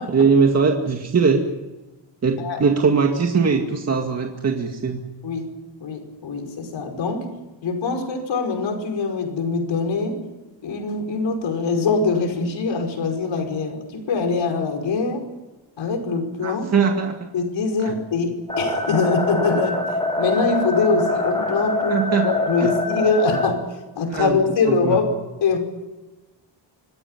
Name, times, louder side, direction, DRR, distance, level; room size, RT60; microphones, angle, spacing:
voice 1, 0.1-1.4 2.2-5.0 16.4-17.1 17.8-18.0 21.9-22.3 22.6-22.7 24.1-24.4 24.7-25.0, right 5 dB, 35° right, 2 dB, 2.1 m, -20 dB
voice 2, 5.2-5.5 5.8-7.3 7.6-10.2 10.6-15.3 15.8-16.7 17.3-19.9 20.2-25.2 25.4-25.6, left 4 dB, 75° left, 4 dB, 5.6 m, -23 dB
sound 1, 18.5-23.5, left 2 dB, 10° left, 5.1 m, -24 dB
26.0 x 17.5 x 9.2 m, 1.1 s
wide cardioid pair, 155°, 45 cm